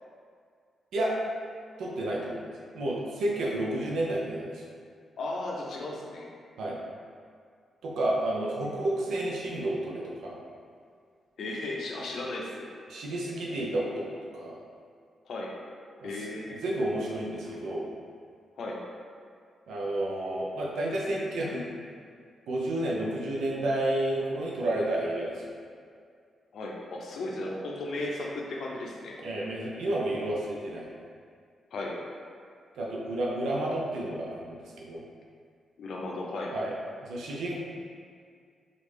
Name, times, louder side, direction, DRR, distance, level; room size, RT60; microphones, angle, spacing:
voice 1, 1.8-2.4 2.7-4.6 6.6-6.8 7.8-10.4 12.0-12.1 12.9-14.6 16.0-16.1 16.5-17.8 19.7-21.7 22.5-25.5 29.2-30.9 32.7-35.1 36.5-36.7 37.0-37.6, right 1 dB, 85° right, -4 dB, 0.5 m, -31 dB
voice 2, 5.2-6.3 8.6-8.7 9.1-9.2 11.4-12.7 15.3-15.5 16.0-16.6 18.6-18.8 26.5-29.2 31.7-32.0 35.8-36.5, left 2 dB, 70° left, -1 dB, 0.5 m, -35 dB
3.1 x 2.4 x 3.4 m, 2.2 s
cardioid pair, 75°, 0 cm